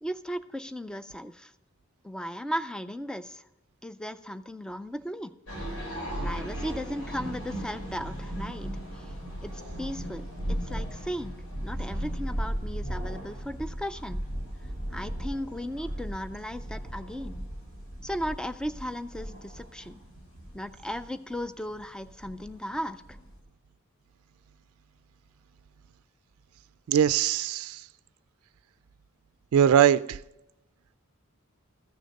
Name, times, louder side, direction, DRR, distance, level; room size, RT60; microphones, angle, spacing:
voice 1, 0.0-1.5 2.0-3.4 3.8-5.3 6.2-9.1 9.4-11.4 11.6-14.2 14.9-17.5 18.0-20.0 20.5-23.0, equal, 5° left, 12 dB, 0.4 m, -36 dB
sound 1, 5.5-23.4, equal, 80° left, 3.7 m, -36 dB
voice 2, 26.9-27.8 29.5-30.0, right 9 dB, 75° right, 15 dB, 0.3 m, -20 dB
14.0 x 6.5 x 5.2 m, 0.93 s
head